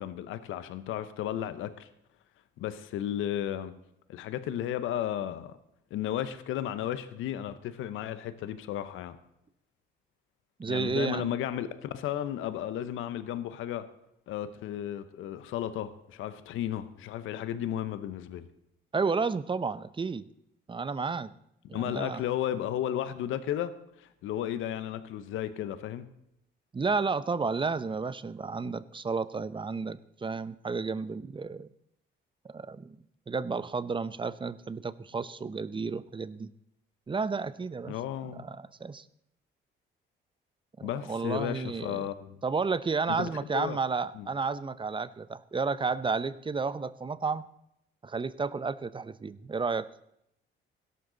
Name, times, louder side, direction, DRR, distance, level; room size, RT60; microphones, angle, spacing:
voice 1, 0.0-1.9 2.6-3.8 4.1-5.6 5.9-9.2 10.7-13.9 14.3-18.4 21.7-26.1 37.9-38.4 40.8-42.4 43.1-43.8 44.1-44.3, left 11 dB, 90° left, 13 dB, 1.0 m, -34 dB
voice 2, 10.6-11.3 18.9-20.3 20.7-21.3 21.7-22.2 26.7-31.7 32.4-33.0 33.3-36.5 37.1-38.0 38.3-39.0 40.8-42.0 42.4-47.4 48.0-49.9, right 4 dB, 25° right, 16 dB, 0.7 m, -32 dB
16.5 x 12.5 x 4.0 m, 0.78 s
cardioid pair, 90°, 20 cm